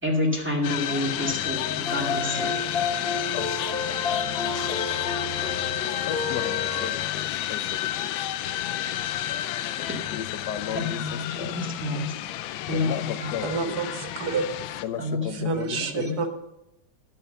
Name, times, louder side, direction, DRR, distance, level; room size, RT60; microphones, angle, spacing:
voice 1, 0.0-2.5 10.7-12.1 12.7-13.3 15.0-15.5 15.8-16.2, left 2 dB, 5° right, 2.0 m, -29 dB
sound 1, 0.6-14.8, left 13 dB, 85° left, 1.3 m, -31 dB
sound 2, 1.8-6.9, left 4 dB, 30° left, 2.2 m, -30 dB
voice 2, 3.3-3.7 4.4-5.1 6.0-8.3 9.7-11.7 12.7-13.6 14.8-16.2, left 9 dB, 70° left, 1.1 m, -36 dB
voice 3, 13.4-14.4 15.5-16.3, right 5 dB, 55° right, 1.6 m, -28 dB
11.0 x 7.6 x 6.8 m
omnidirectional pair, 2.1 m